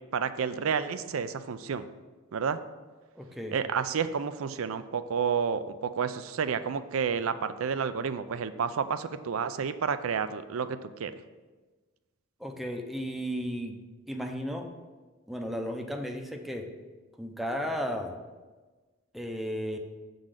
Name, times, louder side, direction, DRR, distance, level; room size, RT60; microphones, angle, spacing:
voice 1, 0.1-1.8 2.3-2.6 3.5-11.1, right 6 dB, 80° right, 12 dB, 0.4 m, -30 dB
voice 2, 3.2-3.6 12.4-13.8 14.1-14.7 15.3-16.7 17.2-18.2 19.1-19.8, equal, ahead, 3 dB, 0.6 m, -34 dB
7.3 x 3.9 x 6.5 m, 1.3 s
head